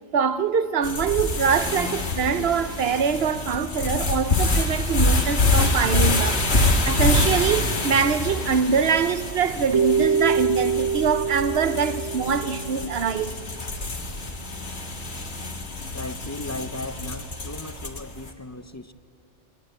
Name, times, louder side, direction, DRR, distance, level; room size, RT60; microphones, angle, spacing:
voice 1, 0.1-6.4 6.8-13.3, right 6 dB, 60° right, 1.0 m, -24 dB
sound 1, 0.8-18.2, left 2 dB, 60° left, 2.1 m, -26 dB
Keyboard (musical), 9.7-13.0, right 6 dB, 25° right, 0.6 m, -25 dB
voice 2, 15.9-18.9, left 2 dB, 20° left, 0.5 m, -36 dB
27.0 x 20.5 x 9.0 m
omnidirectional pair, 1.2 m